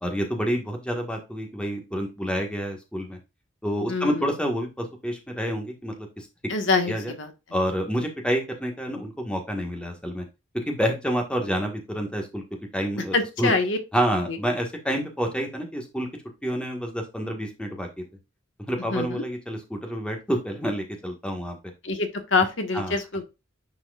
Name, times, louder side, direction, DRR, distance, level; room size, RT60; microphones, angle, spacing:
voice 1, 0.0-3.2 3.6-6.3 6.8-7.1 7.5-10.2 10.6-12.4 12.7-13.5 13.9-16.1 16.4-18.0 18.7-21.6 22.7-22.9, equal, 5° left, 2 dB, 1.5 m, -28 dB
voice 2, 3.9-4.3 6.5-7.3 13.1-13.8 14.3-14.4 18.9-19.2 21.8-23.2, left 3 dB, 70° left, 5 dB, 1.5 m, -25 dB
9.8 x 4.8 x 2.4 m, 0.26 s
head